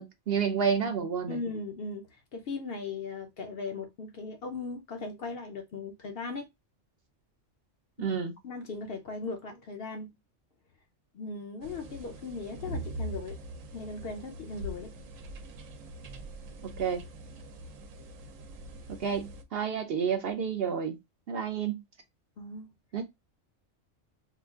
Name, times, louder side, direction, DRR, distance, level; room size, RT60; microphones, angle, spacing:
voice 1, 0.0-1.4 8.0-8.3 16.6-17.0 18.9-21.0 21.3-21.8 22.9-23.0, right 7 dB, 65° right, 0.6 m, -30 dB
voice 2, 1.3-6.5 8.0-8.1 8.4-10.2 11.1-13.4 13.7-14.9 22.4-22.7, left 4 dB, 60° left, 0.7 m, -38 dB
sound 1, 11.6-19.4, right 1 dB, 85° right, 1.0 m, -42 dB
4.9 x 2.4 x 2.3 m
omnidirectional pair, 1.3 m